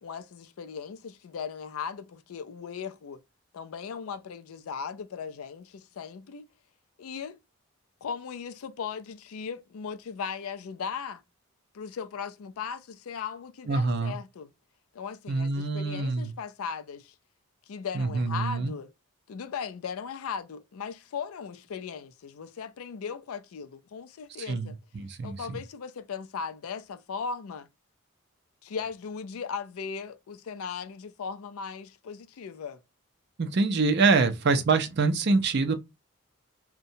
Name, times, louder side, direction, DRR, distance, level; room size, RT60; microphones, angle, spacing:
voice 1, 0.0-3.2 3.5-6.5 7.0-7.4 8.0-11.2 11.7-14.5 14.9-17.1 17.7-18.9 19.3-24.8 25.2-27.7 28.6-32.8, left 6 dB, 75° left, 0.4 m, -38 dB
voice 2, 13.7-14.2 15.3-16.3 17.9-18.7 24.5-25.6 33.4-35.7, right 4 dB, 50° right, 0.4 m, -25 dB
2.6 x 2.1 x 2.6 m
head